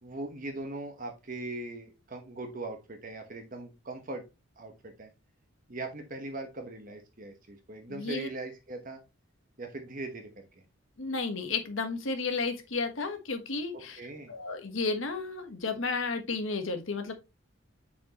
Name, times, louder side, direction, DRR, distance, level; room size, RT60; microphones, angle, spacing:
voice 1, 0.0-4.2 4.6-5.1 5.7-9.0 9.6-10.5 13.7-14.3, right 2 dB, 40° right, 1.0 m, -40 dB
voice 2, 7.9-8.3 11.0-14.0 14.3-17.2, left 4 dB, 65° left, 1.2 m, -32 dB
7.3 x 4.6 x 2.9 m
head